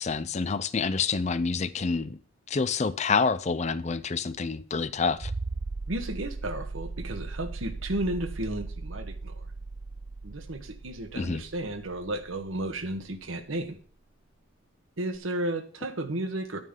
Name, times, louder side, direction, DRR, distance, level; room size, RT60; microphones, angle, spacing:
voice 1, 0.0-2.2 2.5-5.3 11.2-11.4, left 4 dB, 35° left, 0.4 m, -28 dB
sound 1, 5.2-13.6 15.1-15.2, right 3 dB, 30° right, 0.4 m, -38 dB
voice 2, 5.9-9.5 10.2-13.8 15.0-16.6, right 1 dB, 80° right, 1.4 m, -33 dB
10.5 x 9.5 x 3.7 m
head